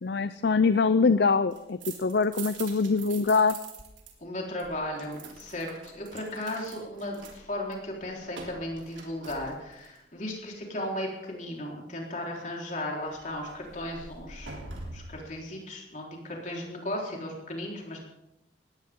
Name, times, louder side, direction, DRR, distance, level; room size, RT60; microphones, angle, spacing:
voice 1, 0.0-3.6, left 4 dB, 60° left, 12 dB, 0.5 m, -24 dB
sound 1, 1.5-4.1 4.4-10.0 13.0-15.2, right 4 dB, 90° right, 3.3 m, -45 dB
voice 2, 4.2-18.0, left 1 dB, 40° left, -1 dB, 4.2 m, -36 dB
19.5 x 16.5 x 3.8 m, 0.89 s
head